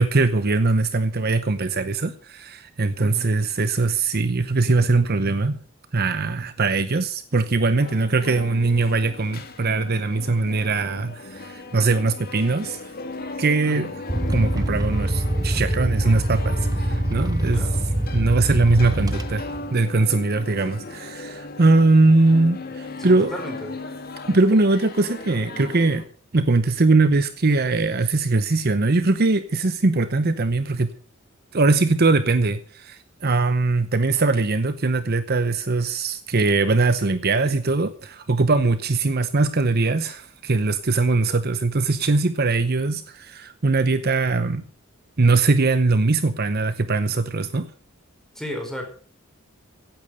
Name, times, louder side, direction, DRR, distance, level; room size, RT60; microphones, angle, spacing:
voice 1, 0.0-5.6 5.9-12.9 13.4-13.9 14.3-17.7 18.1-19.5 19.7-23.3 24.3-26.0 26.3-30.9 31.5-44.6 45.2-47.7, right 3 dB, 45° right, 0.8 m, -21 dB
voice 2, 3.0-3.3 13.7-13.9 17.5-17.8 23.0-23.7 48.3-48.9, equal, ahead, 4.8 m, -34 dB
sound 1, 7.8-26.0, left 2 dB, 45° left, 1.8 m, -37 dB
sound 2, 14.1-19.7, right 1 dB, 15° right, 0.9 m, -24 dB
16.0 x 8.8 x 6.5 m
head